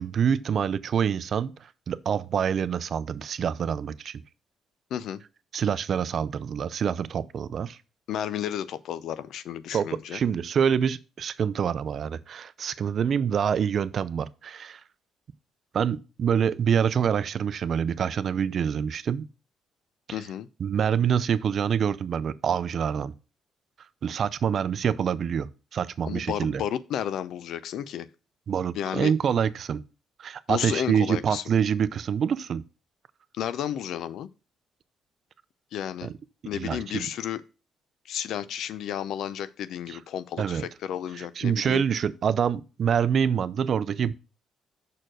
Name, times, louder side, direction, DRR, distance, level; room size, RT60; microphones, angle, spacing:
voice 1, 0.0-4.2 5.5-7.8 9.7-14.8 15.7-19.3 20.1-20.2 20.6-23.1 24.0-26.6 28.5-29.8 30.2-32.6 36.0-36.1 36.5-37.1 39.9-40.0 40.4-40.7 41.1-44.1, right 7 dB, 55° right, 0.5 m, -26 dB
voice 2, 4.9-5.2 8.1-10.2 20.1-20.5 26.0-28.1 28.7-29.1 30.5-31.4 33.4-34.3 35.7-36.1 36.4-37.4 38.1-41.8, left 10 dB, 75° left, 0.5 m, -32 dB
6.3 x 4.5 x 6.1 m
cardioid pair, 90°, 0 cm